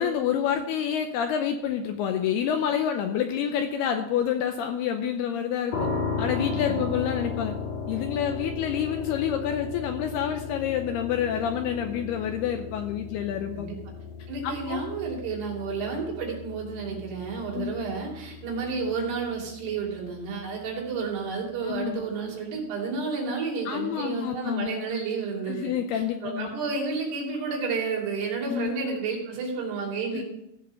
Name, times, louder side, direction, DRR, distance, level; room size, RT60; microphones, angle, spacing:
voice 1, 0.0-5.9 6.2-7.5 7.9-13.7 14.4-14.9 17.5-17.8 21.6-22.0 23.7-24.7 25.5-26.5 28.5-28.7 30.1-30.2, left 9 dB, 80° left, 6 dB, 2.4 m, -28 dB
sound 1, 5.7-20.6, left 5 dB, 50° left, 2.4 m, -36 dB
voice 2, 6.5-6.9 13.5-13.8 14.3-30.2, right 4 dB, 65° right, -2 dB, 4.9 m, -31 dB
16.0 x 5.7 x 6.4 m, 0.82 s
omnidirectional pair, 5.2 m